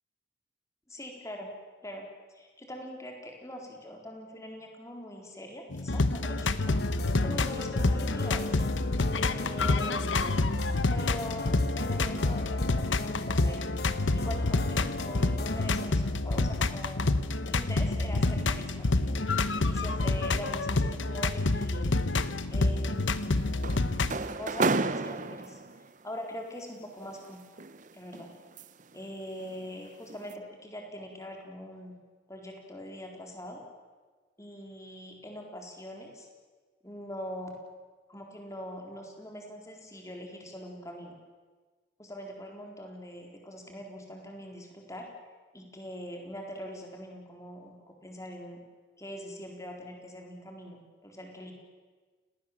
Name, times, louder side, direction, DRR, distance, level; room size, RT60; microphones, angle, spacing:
voice 1, 0.9-1.5 1.8-2.1 2.3-6.7 7.2-8.6 9.2-10.6 10.9-13.6 14.1-17.1 17.4-21.9 22.5-23.5 24.4-27.4 27.9-28.3 28.9-32.0 32.3-33.6 34.4-36.3 36.8-37.6 38.1-41.1 42.0-45.1 45.5-48.6 49.0-51.5, equal, 15° left, 1 dB, 4.2 m, -42 dB
sound 1, 5.7-24.2, left 2 dB, 85° left, 1.1 m, -28 dB
sound 2, 6.7-15.9, left 2 dB, 55° left, 1.5 m, -39 dB
sound 3, 22.9-25.9 27.0-29.0 29.4-29.7 30.1-30.3, right 3 dB, 40° right, 0.8 m, -32 dB
29.0 x 19.0 x 7.6 m, 1.4 s
head